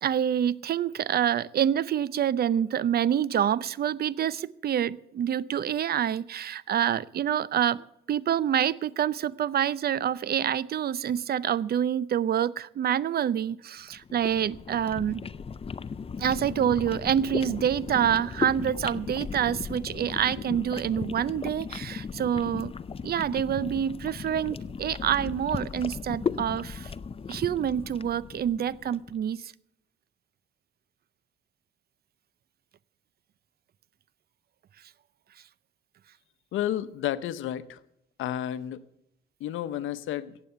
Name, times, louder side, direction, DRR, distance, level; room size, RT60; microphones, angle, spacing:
voice 1, 0.0-15.2 16.2-22.7 23.0-26.9 27.3-29.5, right 9 dB, 50° right, 20 dB, 0.6 m, -27 dB
sound 1, 13.9-29.1, left 6 dB, 30° left, 0.6 m, -36 dB
voice 2, 36.5-37.8 38.2-38.8 39.4-40.4, left 11 dB, 80° left, 14 dB, 0.8 m, -31 dB
15.5 x 9.0 x 6.8 m, 0.78 s
cardioid pair, 90°, 20 cm